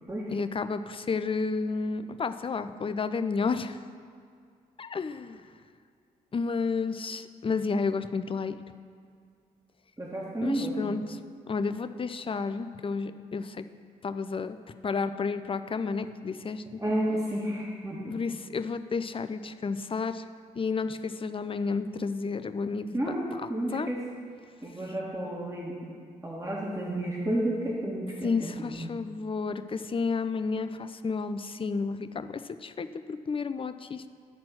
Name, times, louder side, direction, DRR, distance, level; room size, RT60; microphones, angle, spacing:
voice 1, 0.3-3.8 4.8-5.4 6.3-8.6 10.4-11.2 11.5-13.6 14.0-14.6 14.8-16.6 18.0-20.2 20.6-23.9 28.2-34.1, left 4 dB, 30° left, 10 dB, 0.5 m, -31 dB
voice 2, 10.0-10.8 16.8-18.2 22.9-24.0 24.6-25.7 26.2-28.7, right 1 dB, 15° right, -4 dB, 1.9 m, -31 dB
11.0 x 4.3 x 6.1 m, 2.2 s
hypercardioid pair, 40°, 18 cm